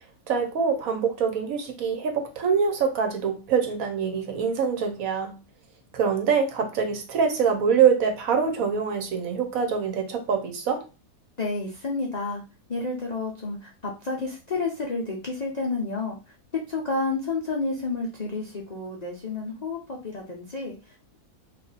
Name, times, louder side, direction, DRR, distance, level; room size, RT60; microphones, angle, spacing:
voice 1, 0.3-5.3 5.9-10.9, right 6 dB, 65° right, 1.1 m, -24 dB
voice 2, 11.4-12.4 12.7-16.2 16.7-21.2, left 3 dB, 55° left, 0.4 m, -30 dB
3.1 x 2.6 x 4.0 m
omnidirectional pair, 1.7 m